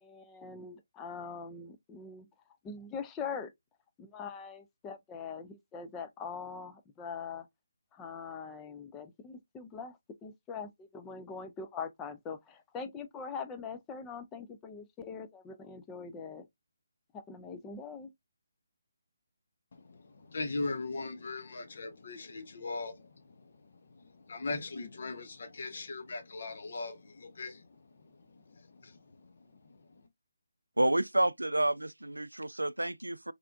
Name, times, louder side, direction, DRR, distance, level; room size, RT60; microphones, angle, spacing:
voice 1, 0.0-2.3 2.6-3.5 4.0-7.5 7.9-16.5 17.1-18.1, left 5 dB, 15° left, 0.5 m, -42 dB
voice 2, 19.7-30.1, left 3 dB, 55° left, 0.9 m, -40 dB
voice 3, 30.8-33.3, right 1 dB, 85° right, 0.3 m, -29 dB
3.6 x 3.3 x 2.4 m
figure-of-eight pair, 145°, 0 cm